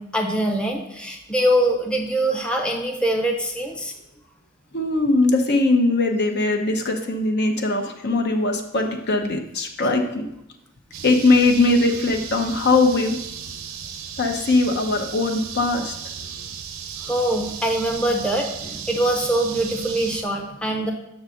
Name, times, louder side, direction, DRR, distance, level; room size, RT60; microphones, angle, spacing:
voice 1, 0.0-3.9 17.0-20.9, right 1 dB, 5° left, 1 dB, 0.7 m, -23 dB
voice 2, 4.7-10.2 11.0-13.2 14.2-15.9, left 2 dB, 50° left, 4 dB, 0.8 m, -20 dB
sound 1, 10.9-20.2, right 7 dB, 70° right, 0.7 m, -35 dB
6.4 x 4.0 x 6.4 m, 0.85 s
head